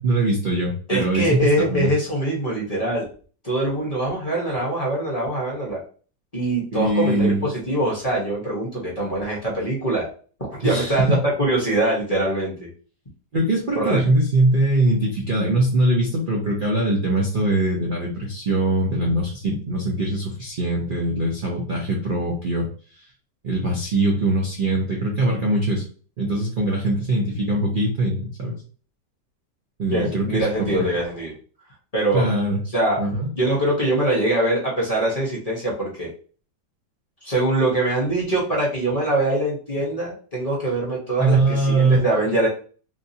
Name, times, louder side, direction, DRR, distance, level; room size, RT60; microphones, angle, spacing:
voice 1, 0.0-1.9 6.7-7.5 10.6-11.2 13.3-22.7 23.4-25.8 26.2-28.6 29.8-30.8 32.1-32.6 33.0-33.3 41.2-42.0, right 2 dB, 50° right, -2 dB, 0.6 m, -22 dB
voice 2, 0.9-3.1 3.4-5.8 6.3-10.1 10.6-12.7 13.7-14.0 29.9-31.3 31.9-32.3 32.7-33.0 33.3-36.1 37.2-42.5, right 1 dB, 25° left, -5 dB, 0.9 m, -23 dB
3.5 x 2.7 x 2.7 m, 0.40 s
omnidirectional pair, 1.8 m